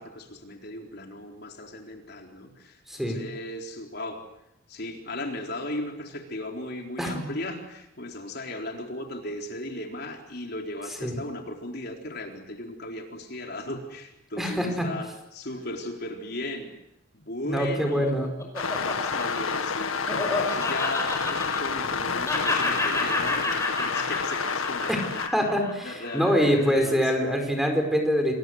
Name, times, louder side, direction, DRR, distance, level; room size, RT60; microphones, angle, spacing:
voice 1, 0.0-4.2 4.7-16.7 17.1-18.1 18.7-25.3 25.8-27.1, left 1 dB, 50° left, 2 dB, 4.1 m, -36 dB
voice 2, 2.9-3.2 7.0-7.2 11.0-11.2 14.4-14.9 17.4-18.3 24.9-25.0 25.3-28.3, equal, ahead, 4 dB, 4.9 m, -24 dB
Laughter, 17.9-22.0 22.2-26.7, left 2 dB, 15° left, 5.8 m, -30 dB
sound 1, 18.6-25.3, left 5 dB, 85° left, 2.0 m, -29 dB
29.0 x 23.0 x 8.0 m, 0.85 s
head